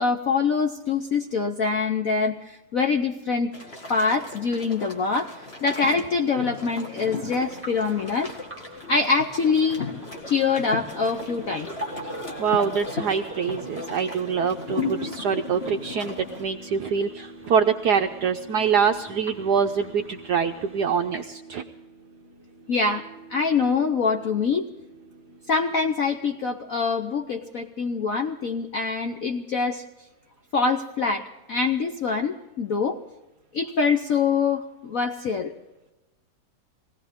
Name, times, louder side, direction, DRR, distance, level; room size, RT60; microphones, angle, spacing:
voice 1, 0.0-3.5 3.9-8.3 8.9-9.8 10.3-11.7 22.7-24.7 25.5-29.8 30.5-33.0 33.5-35.5, left 4 dB, 60° left, 4 dB, 0.9 m, -24 dB
sound 1, 3.5-16.4, left 3 dB, 30° left, 1.9 m, -36 dB
sound 2, 7.3-21.2, right 1 dB, 10° right, 0.8 m, -44 dB
sound 3, 11.0-27.3, right 3 dB, 35° right, 1.4 m, -46 dB
voice 2, 12.4-21.6, right 6 dB, 70° right, 5 dB, 1.0 m, -25 dB
20.5 x 17.0 x 3.6 m, 1.0 s
omnidirectional pair, 2.4 m